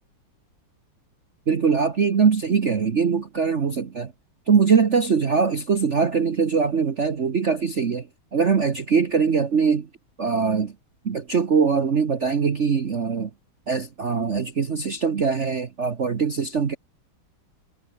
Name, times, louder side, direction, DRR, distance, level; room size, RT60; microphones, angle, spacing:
voice 1, 1.5-4.1 4.5-8.1 8.3-9.9 10.2-10.7 11.0-13.3 13.7-16.8, right 5 dB, 40° right, 1.3 m, -22 dB
omnidirectional pair, 2.3 m